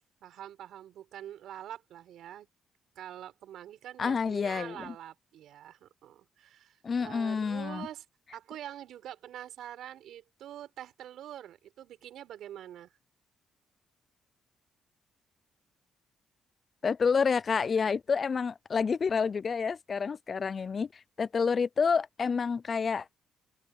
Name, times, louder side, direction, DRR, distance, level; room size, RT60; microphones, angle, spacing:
voice 1, 0.2-2.5 2.9-8.0 8.3-12.9, right 11 dB, 75° right, 4.5 m, -45 dB
voice 2, 4.0-4.9 6.8-7.9 16.8-23.1, left 5 dB, 40° left, 0.4 m, -29 dB
open air
cardioid pair, 90°, 0 cm